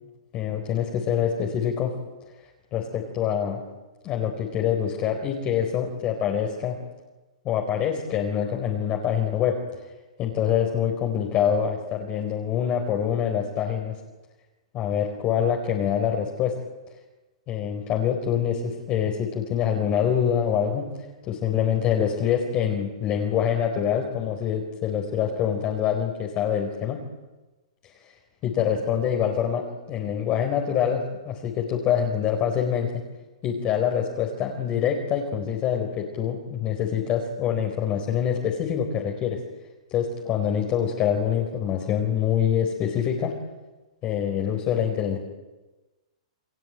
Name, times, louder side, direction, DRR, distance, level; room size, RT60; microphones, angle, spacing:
voice 1, 0.3-1.9 2.7-3.6 4.0-6.8 7.4-9.6 10.2-14.0 14.7-16.5 17.5-20.9 21.3-27.0 27.8-27.9 28.4-32.9 33.4-39.4 39.9-43.3 44.0-45.2, left 8 dB, 30° left, 1 dB, 4.4 m, -25 dB
30.0 x 21.0 x 8.9 m, 1.2 s
hypercardioid pair, 145°, 4 cm